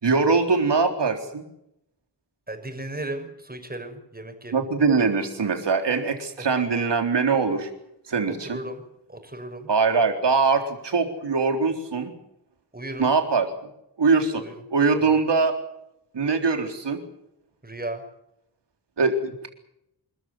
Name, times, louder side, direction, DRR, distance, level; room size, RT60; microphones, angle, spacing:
voice 1, 0.0-1.4 4.5-7.7 8.1-8.6 9.7-12.1 13.0-13.5 14.0-14.4 14.7-15.6 16.1-17.0 19.0-19.5, right 4 dB, 90° right, 5 dB, 3.9 m, -22 dB
voice 2, 2.5-4.6 8.3-8.8 9.1-9.7 12.7-13.1 14.4-14.5 15.0-15.2 17.6-18.0, right 1 dB, 20° right, 6 dB, 5.8 m, -35 dB
27.5 x 14.0 x 9.8 m, 0.80 s
wide cardioid pair, 90°, 41 cm